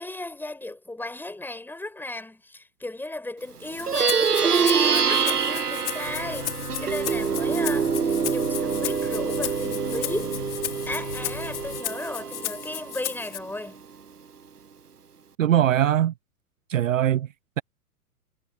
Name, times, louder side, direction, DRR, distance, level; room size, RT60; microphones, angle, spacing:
voice 1, 0.0-10.4 10.9-13.8, left 2 dB, 5° left, 6.3 m, -35 dB
Plucked string instrument, 3.7-13.4, right 6 dB, 80° right, 1.0 m, -26 dB
Rattle (instrument), 3.8-13.4, left 15 dB, 50° left, 5.5 m, -35 dB
sound 1, 6.0-11.8, left 3 dB, 80° left, 5.3 m, -39 dB
voice 2, 15.4-16.1 16.7-17.3, right 11 dB, 60° right, 0.8 m, -21 dB
figure-of-eight pair, 105°, 46 cm